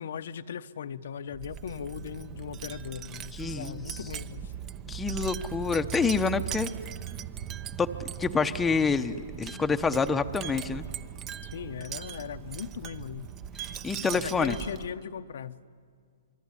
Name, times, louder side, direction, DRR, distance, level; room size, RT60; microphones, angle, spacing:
voice 1, 0.0-4.5 11.5-13.3 13.9-15.6, left 8 dB, 70° left, 10 dB, 0.9 m, -38 dB
Wind chime, 1.3-15.0, right 10 dB, 25° right, 0.8 m, -39 dB
voice 2, 3.3-4.0 4.9-6.7 7.8-10.8 13.6-14.6, left 5 dB, 10° left, 7 dB, 0.9 m, -28 dB
26.0 x 22.5 x 9.9 m, 2.1 s
hypercardioid pair, 140°, 0 cm